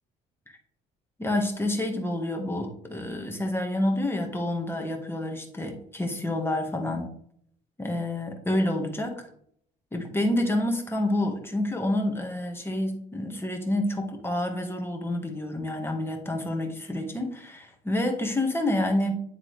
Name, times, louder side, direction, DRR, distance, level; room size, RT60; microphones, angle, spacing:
voice 1, 1.2-7.1 7.8-9.2 9.9-19.1, left 1 dB, 15° left, 3 dB, 1.6 m, -28 dB
9.8 x 3.8 x 3.4 m, 0.65 s
supercardioid pair, 85°, 18 cm